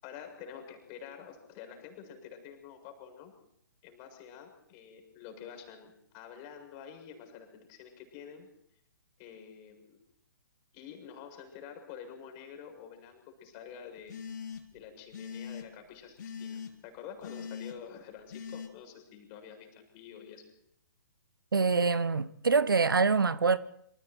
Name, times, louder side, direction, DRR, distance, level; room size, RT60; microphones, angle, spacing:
voice 1, 0.0-3.3 3.8-8.5 9.2-10.0 10.7-14.2 14.7-20.4, left 8 dB, 30° left, 7.1 m, -48 dB
sound 1, 14.1-14.8 15.1-15.7 16.2-16.7 17.2-17.7 18.3-18.7, left 6 dB, 55° left, 3.7 m, -41 dB
voice 2, 21.5-23.6, right 4 dB, 75° right, 1.1 m, -25 dB
28.5 x 27.0 x 4.5 m
figure-of-eight pair, 130°, 11 cm